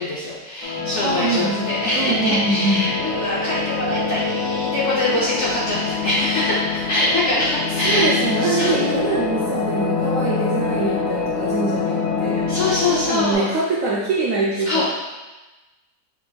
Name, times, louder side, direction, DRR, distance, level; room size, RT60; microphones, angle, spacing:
voice 1, 0.0-8.1 8.4-8.7 12.5-13.5 14.7-14.8, left 1 dB, 60° left, -7 dB, 0.7 m, -23 dB
sound 1, 0.6-13.3, left 4 dB, 85° left, 1.3 m, -25 dB
voice 2, 1.0-2.8 7.8-12.4 12.9-14.9, right 3 dB, 75° right, -4 dB, 0.7 m, -24 dB
5.9 x 3.3 x 2.2 m, 1.1 s
omnidirectional pair, 2.0 m